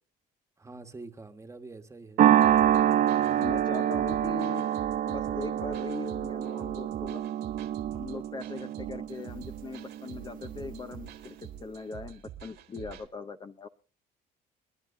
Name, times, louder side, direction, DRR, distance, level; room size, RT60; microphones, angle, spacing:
voice 1, 0.6-2.3 3.2-3.5, right 3 dB, 15° right, 1.3 m, -46 dB
sound 1, 2.2-10.7, right 11 dB, 55° right, 0.6 m, -27 dB
sound 2, 2.4-13.1, right 10 dB, 75° right, 1.8 m, -47 dB
voice 2, 3.4-4.7 5.0-7.2 7.9-13.7, left 4 dB, 25° left, 0.6 m, -40 dB
28.0 x 11.0 x 2.6 m
cardioid pair, 110°, 17 cm